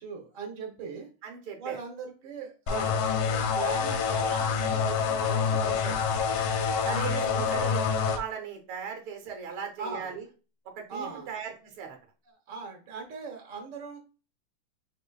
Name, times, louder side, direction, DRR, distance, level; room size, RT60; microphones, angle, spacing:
voice 1, 0.0-1.1 1.6-6.2 6.8-7.6 9.5-10.2 10.9-11.3 12.5-14.0, right 5 dB, 45° right, 2 dB, 1.3 m, -40 dB
voice 2, 1.2-1.8 6.8-7.8 8.1-10.2 10.8-12.0, right 7 dB, 90° right, 4 dB, 1.8 m, -37 dB
sound 1, 2.7-8.2, left 6 dB, 85° left, 1.6 m, -27 dB
5.9 x 3.0 x 2.3 m, 0.34 s
omnidirectional pair, 2.3 m